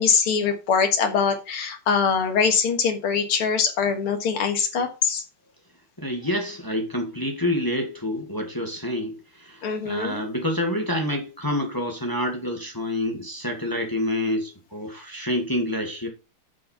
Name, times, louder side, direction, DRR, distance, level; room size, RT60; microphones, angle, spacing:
voice 1, 0.0-5.2 9.6-10.2, left 6 dB, 85° left, 2.4 m, -23 dB
voice 2, 6.0-16.1, left 1 dB, 10° left, 1.6 m, -27 dB
7.3 x 5.8 x 5.7 m
omnidirectional pair, 2.4 m